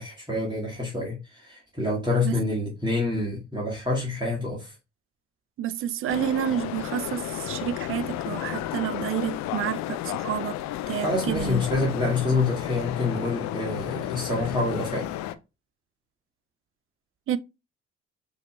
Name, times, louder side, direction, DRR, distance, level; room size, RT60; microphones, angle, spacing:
voice 1, 0.0-4.7 11.0-15.1, left 2 dB, 15° right, 1.9 m, -27 dB
voice 2, 5.6-10.6 10.9-11.6 17.3-17.4, right 10 dB, 40° right, 0.5 m, -29 dB
sound 1, 6.1-15.3, left 13 dB, 55° left, 0.5 m, -32 dB
6.4 x 3.2 x 2.3 m
figure-of-eight pair, 45°, 34 cm